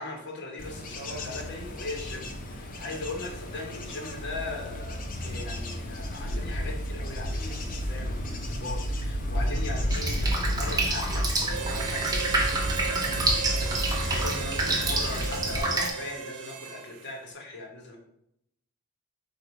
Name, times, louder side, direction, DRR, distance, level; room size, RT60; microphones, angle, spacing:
voice 1, 0.0-18.0, left 2 dB, 55° left, 1 dB, 0.9 m, -39 dB
Bird / Insect / Wind, 0.6-15.6, equal, 40° left, 0.5 m, -32 dB
Drip, 9.9-15.9, right 2 dB, 15° right, 0.5 m, -29 dB
Harmonica, 11.5-17.1, right 7 dB, 85° right, 0.4 m, -36 dB
4.1 x 2.3 x 4.6 m, 0.78 s
head